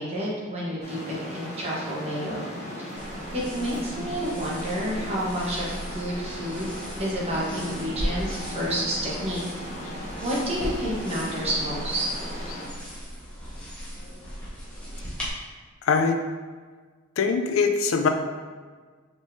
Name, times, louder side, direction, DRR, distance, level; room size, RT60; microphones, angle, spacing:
voice 1, 0.0-2.5 2.8-2.9 3.3-6.7 7.0-9.4 10.2-12.1, equal, 30° right, -6 dB, 1.1 m, -29 dB
sound 1, 0.8-12.7, equal, 35° left, 1.0 m, -37 dB
sound 2, 2.9-15.3, equal, 5° left, 1.0 m, -37 dB
voice 2, 15.8-16.2 17.2-18.1, left 5 dB, 85° left, 6 dB, 0.4 m, -22 dB
4.9 x 3.7 x 2.7 m, 1.5 s
head